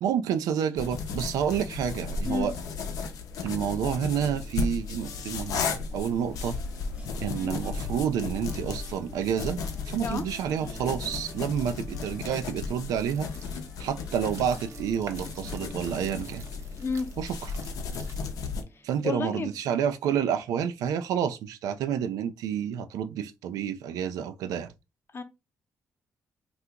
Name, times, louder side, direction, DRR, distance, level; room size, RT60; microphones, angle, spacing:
voice 1, 0.0-2.5 3.4-6.5 7.2-9.6 9.8-13.3 13.8-16.5 17.2-17.5 18.8-24.7, right 8 dB, 85° right, 0.4 m, -29 dB
sound 1, 0.7-18.6, left 4 dB, 85° left, 0.6 m, -35 dB
sound 2, 4.1-19.3 19.7-20.0 20.2-20.5, right 2 dB, 20° right, 0.6 m, -52 dB
sound 3, 12.9-18.5, right 5 dB, 60° right, 0.8 m, -49 dB
voice 2, 18.7-19.5 25.1-25.2, left 4 dB, 40° left, 0.7 m, -31 dB
2.8 x 2.4 x 3.5 m
cardioid pair, 80°, 6 cm